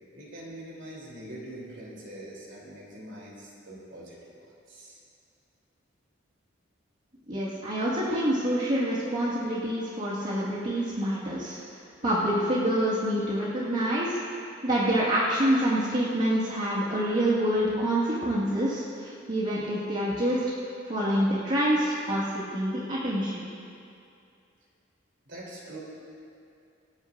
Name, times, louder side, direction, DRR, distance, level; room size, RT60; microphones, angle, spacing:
voice 1, 0.1-5.0 25.2-25.8, right 1 dB, 65° right, -5 dB, 3.4 m, -43 dB
voice 2, 7.3-11.6 12.0-14.2 14.6-20.4 20.9-23.5, equal, 40° right, -9 dB, 1.9 m, -26 dB
26.5 x 9.6 x 2.6 m, 2.5 s
head